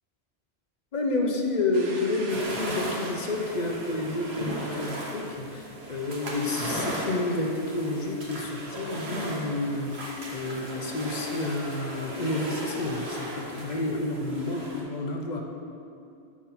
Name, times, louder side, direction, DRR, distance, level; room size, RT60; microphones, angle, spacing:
voice 1, 0.9-15.4, left 2 dB, 45° left, 2 dB, 0.7 m, -30 dB
Domestic sounds home sounds, 1.7-6.4, right 2 dB, 85° right, 1.2 m, -45 dB
sound 1, 2.3-14.8, right 1 dB, 65° right, 1.4 m, -36 dB
7.1 x 3.7 x 5.7 m, 2.6 s
omnidirectional pair, 1.2 m